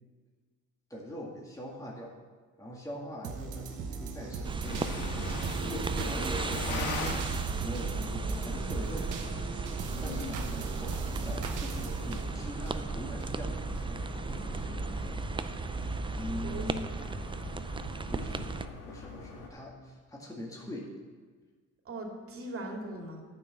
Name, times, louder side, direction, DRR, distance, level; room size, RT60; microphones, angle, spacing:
voice 1, 0.9-2.2 2.6-7.3 7.6-9.4 10.0-15.2 16.2-16.9 18.1-18.5 18.9-20.9, equal, 10° left, -3 dB, 2.0 m, -42 dB
sound 1, 3.2-13.3 13.7-13.8, right 6 dB, 90° right, 1.1 m, -39 dB
sound 2, 4.4-18.7, right 3 dB, 15° right, 0.4 m, -35 dB
sound 3, 4.6-19.5, left 3 dB, 85° left, 1.8 m, -42 dB
voice 2, 9.9-10.5 16.4-16.6 17.0-17.2 21.8-23.2, right 1 dB, 45° right, 1 dB, 2.3 m, -40 dB
9.7 x 5.9 x 7.7 m, 1.4 s
cardioid pair, 90°, 30 cm